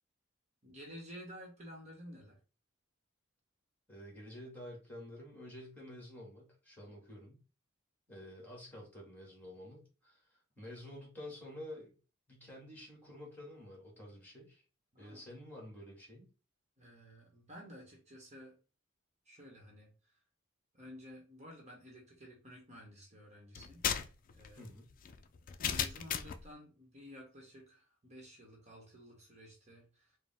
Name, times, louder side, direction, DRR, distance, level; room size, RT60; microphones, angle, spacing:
voice 1, 0.6-2.4 14.9-15.2 16.8-18.6 19.2-20.2 20.7-23.8 24.3-24.7 25.6-30.2, equal, 35° right, -1 dB, 1.1 m, -53 dB
voice 2, 3.9-7.4 8.1-11.9 12.3-14.6 15.0-16.3 24.6-24.8, left 1 dB, 10° left, -2 dB, 1.7 m, -50 dB
sound 1, 23.5-26.5, left 8 dB, 45° left, 0.4 m, -36 dB
4.9 x 2.2 x 3.4 m, 0.34 s
head